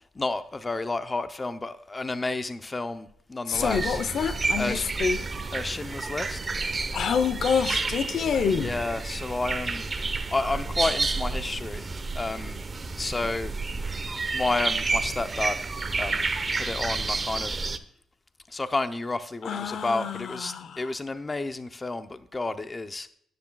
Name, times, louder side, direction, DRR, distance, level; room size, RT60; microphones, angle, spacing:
voice 1, 0.0-4.0 4.6-4.8 5.5-6.4 8.5-9.9 10.3-12.6 13.0-13.5 14.3-15.6 16.0-16.3 16.5-17.5 18.5-23.1, left 2 dB, 20° left, 0.6 m, -31 dB
voice 2, 3.5-5.2 6.9-8.7 19.4-20.9, left 6 dB, 60° left, 0.7 m, -27 dB
sound 1, 3.5-17.8, right 3 dB, 30° right, 0.8 m, -30 dB
13.0 x 9.6 x 2.3 m
cardioid pair, 90°, 0 cm